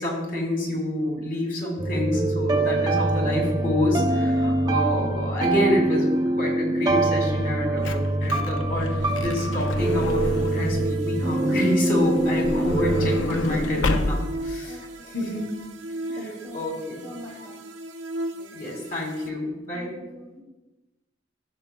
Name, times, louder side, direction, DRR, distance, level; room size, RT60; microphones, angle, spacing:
voice 1, 0.0-12.9 13.3-14.8 15.1-15.5 16.2-17.0 18.5-19.9, left 1 dB, 50° left, -1 dB, 2.3 m, -27 dB
sound 1, 1.8-13.2, right 2 dB, 20° right, 0.6 m, -24 dB
Truck / Door, 7.4-10.9 12.0-14.5 15.2-15.3 15.5-15.7, left 2 dB, 90° left, 0.6 m, -30 dB
sound 2, 9.8-19.3, right 1 dB, 75° right, 0.7 m, -37 dB
voice 2, 12.1-12.9 14.6-15.2 15.9-17.6 18.4-18.6 19.7-20.4, equal, 35° left, -4 dB, 1.7 m, -43 dB
14.5 x 6.5 x 2.3 m, 1.1 s
head